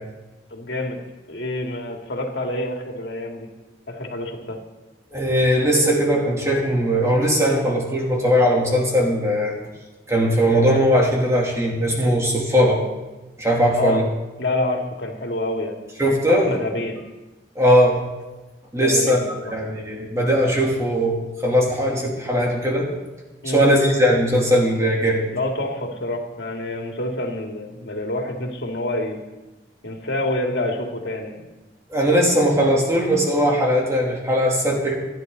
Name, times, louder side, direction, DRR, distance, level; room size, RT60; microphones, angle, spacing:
voice 1, 0.5-1.0 1.3-3.5 3.9-4.6 13.7-14.0 14.4-15.8 16.3-17.0 18.8-19.5 23.4-23.6 25.3-29.2 29.8-31.4, left 1 dB, 85° left, 2 dB, 2.3 m, -27 dB
voice 2, 5.1-9.5 10.1-12.8 13.4-14.0 16.0-16.5 17.5-18.0 18.7-19.2 19.5-22.9 23.4-25.3 31.9-34.9, equal, 15° right, -2 dB, 3.0 m, -19 dB
28.0 x 10.5 x 4.0 m, 1.1 s
head